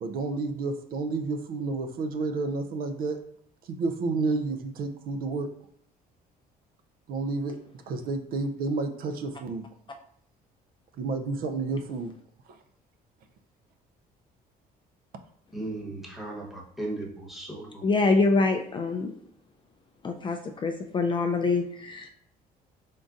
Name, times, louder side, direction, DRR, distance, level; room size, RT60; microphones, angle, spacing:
voice 1, 0.0-3.2 3.6-5.5 7.1-7.6 7.9-9.6 11.0-12.1 12.5-12.6, right 3 dB, 60° right, 8 dB, 0.5 m, -30 dB
voice 2, 15.5-17.8, right 2 dB, ahead, -3 dB, 1.0 m, -36 dB
voice 3, 17.8-19.1 20.0-22.1, left 3 dB, 30° left, 4 dB, 0.3 m, -25 dB
3.8 x 3.7 x 2.5 m, 0.64 s
cardioid pair, 110°, 17 cm